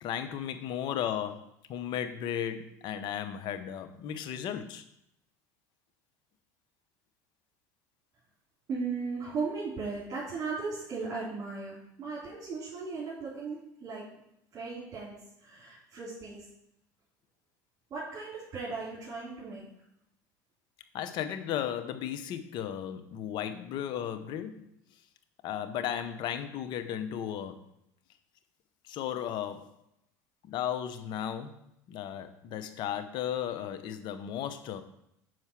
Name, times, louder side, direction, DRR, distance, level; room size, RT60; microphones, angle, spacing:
voice 1, 0.0-4.8 20.9-24.6 25.4-27.6 28.8-29.7 30.4-34.8, left 10 dB, 55° left, 9 dB, 0.8 m, -35 dB
voice 2, 8.7-14.0 14.5-16.4 17.9-19.7, right 4 dB, 40° right, -7 dB, 3.1 m, -37 dB
5.7 x 4.7 x 5.9 m, 0.77 s
hypercardioid pair, 85°, 9 cm